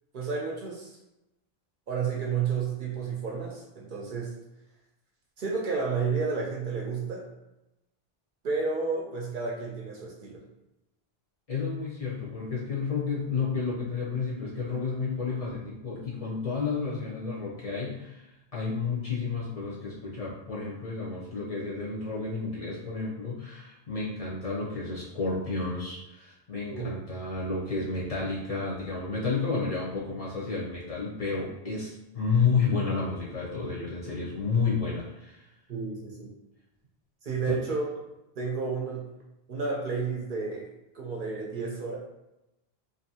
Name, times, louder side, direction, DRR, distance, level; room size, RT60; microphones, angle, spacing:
voice 1, 0.1-1.0 1.9-4.3 5.4-7.3 8.4-10.4 26.7-26.9 35.7-36.3 37.2-37.8 38.4-39.1 39.5-40.7 40.9-42.0, right 5 dB, 60° right, -2 dB, 0.6 m, -31 dB
voice 2, 11.5-35.5 37.5-37.6, left 4 dB, 45° left, -6 dB, 0.6 m, -31 dB
2.6 x 2.5 x 2.7 m, 0.94 s
omnidirectional pair, 1.0 m